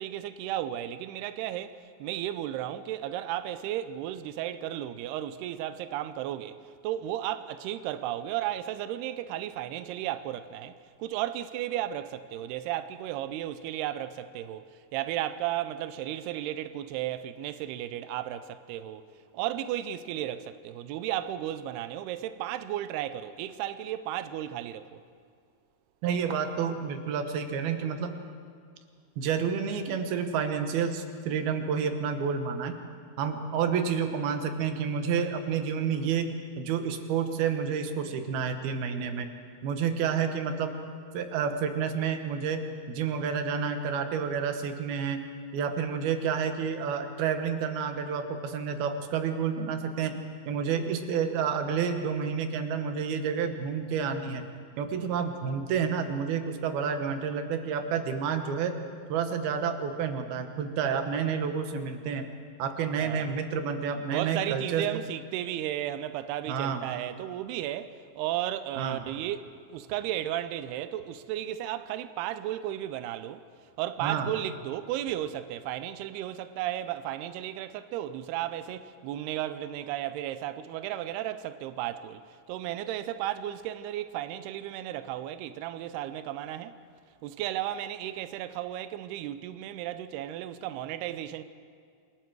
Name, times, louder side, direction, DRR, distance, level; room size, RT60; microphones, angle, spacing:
voice 1, 0.0-19.0 19.3-25.0 63.0-63.4 64.1-73.4 73.8-82.2 82.5-86.8 87.2-91.4, right 12 dB, 90° right, 2.3 m, -34 dB
voice 2, 26.0-28.2 29.2-32.8 33.2-39.3 39.6-40.8 41.1-45.3 45.5-54.5 54.8-58.8 59.1-62.3 62.6-64.9 66.5-66.8 68.8-69.0 74.0-74.3, right 6 dB, 65° right, 2.8 m, -29 dB
27.5 x 21.0 x 4.7 m
omnidirectional pair, 5.4 m